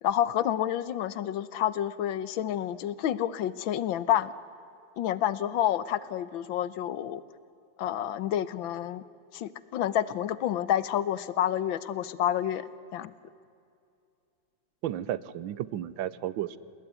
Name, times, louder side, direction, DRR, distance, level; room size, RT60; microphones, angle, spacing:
voice 1, 0.0-4.3 5.0-7.2 7.8-9.0 9.3-12.7 12.9-13.1, left 11 dB, 85° left, 16 dB, 1.6 m, -29 dB
voice 2, 14.8-16.6, right 12 dB, 80° right, 18 dB, 1.6 m, -33 dB
29.0 x 19.5 x 9.5 m, 2.5 s
omnidirectional pair, 2.1 m